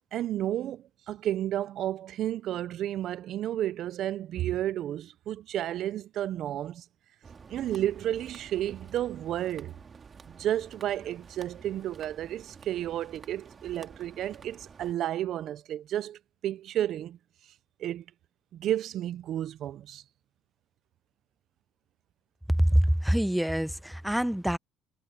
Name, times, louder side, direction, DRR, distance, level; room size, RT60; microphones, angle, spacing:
voice 1, 0.1-6.8 7.5-9.7 10.3-17.2 17.8-18.0 18.5-20.0, right 12 dB, 60° right, 0.6 m, -32 dB
sound 1, 7.2-14.9, right 5 dB, 35° right, 2.2 m, -50 dB
voice 2, 22.5-24.6, equal, 5° right, 0.9 m, -25 dB
cardioid pair, 100°, 0 cm